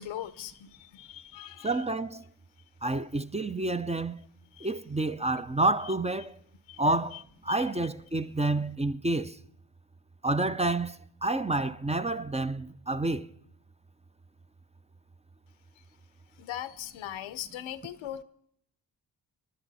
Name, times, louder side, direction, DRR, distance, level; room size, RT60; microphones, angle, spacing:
voice 1, 0.0-1.8 4.6-4.7 6.7-7.0 7.5-7.8 16.4-18.2, left 11 dB, 85° left, 0.8 m, -40 dB
voice 2, 1.6-2.2 2.8-4.2 4.6-6.4 6.8-9.4 10.2-13.3, right 2 dB, 15° right, 0.5 m, -29 dB
24.5 x 11.0 x 4.1 m
cardioid pair, 55°, 45 cm